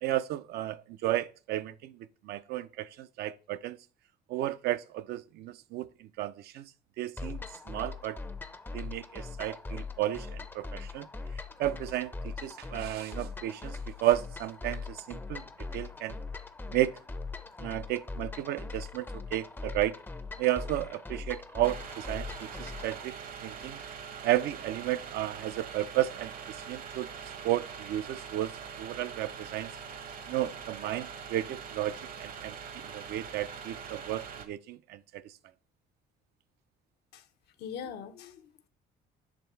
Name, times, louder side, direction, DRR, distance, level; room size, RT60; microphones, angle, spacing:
voice 1, 0.0-2.0 2.2-3.8 4.3-6.6 7.0-8.2 8.7-11.1 11.6-15.4 15.7-16.2 16.7-17.0 17.6-20.0 20.4-23.1 23.4-23.8 24.2-27.1 27.4-28.5 28.8-29.7 30.3-35.3, right 14 dB, 75° right, 0.5 m, -33 dB
sound 1, 7.2-23.0, left 3 dB, 10° left, 0.5 m, -41 dB
sound 2, 21.6-34.5, right 7 dB, 55° right, 0.9 m, -43 dB
voice 2, 37.6-38.7, left 7 dB, 75° left, 0.7 m, -42 dB
7.4 x 3.3 x 4.4 m
cardioid pair, 110°, 17 cm